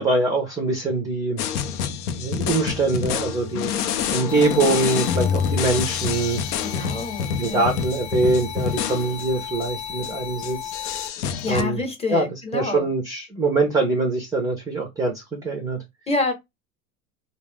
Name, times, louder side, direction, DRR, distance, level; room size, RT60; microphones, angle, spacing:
voice 1, 0.0-1.4 2.1-3.7 4.1-6.4 7.4-10.7 11.5-11.8 12.1-12.2 12.5-15.8, right 3 dB, 10° right, 0.4 m, -23 dB
sound 1, 1.4-9.3 9.6-9.7 10.0-10.1 10.4-11.6, left 7 dB, 85° left, 0.6 m, -27 dB
sound 2, 4.3-11.1, left 8 dB, 50° left, 0.8 m, -36 dB
voice 2, 6.6-7.8 11.4-12.9 16.1-16.3, left 3 dB, 15° left, 0.8 m, -27 dB
2.3 x 2.0 x 3.4 m
hypercardioid pair, 105°, 45 cm